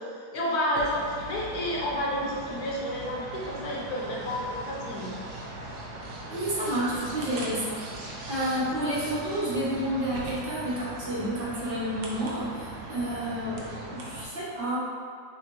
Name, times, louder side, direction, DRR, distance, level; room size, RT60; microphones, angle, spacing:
voice 1, 0.3-5.1, equal, 75° left, -4 dB, 1.3 m, -30 dB
sound 1, 0.7-14.2, right 2 dB, 80° right, 1.2 m, -40 dB
voice 2, 6.3-7.8 8.3-14.8, right 1 dB, 40° right, -9 dB, 1.1 m, -30 dB
5.5 x 2.4 x 3.0 m, 2.1 s
omnidirectional pair, 1.7 m